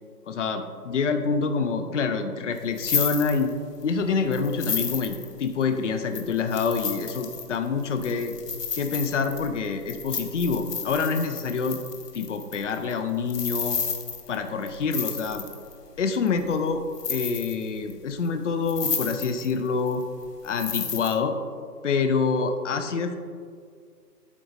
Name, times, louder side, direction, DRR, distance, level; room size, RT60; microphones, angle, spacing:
voice 1, 0.3-3.5 3.8-8.3 8.7-11.8 12.1-13.8 14.3-15.4 16.0-16.8 17.1-20.0 20.4-21.4 21.8-23.2, left 5 dB, 50° left, 8 dB, 0.6 m, -26 dB
sound 1, 2.6-3.8 4.3-5.6 6.1-15.7 16.3-16.7 16.9-17.9 18.2-18.3 18.7-19.6 19.9-21.2, left 6 dB, 75° left, 1.0 m, -32 dB
12.0 x 4.8 x 2.6 m, 2.1 s
figure-of-eight pair, 140°, 48 cm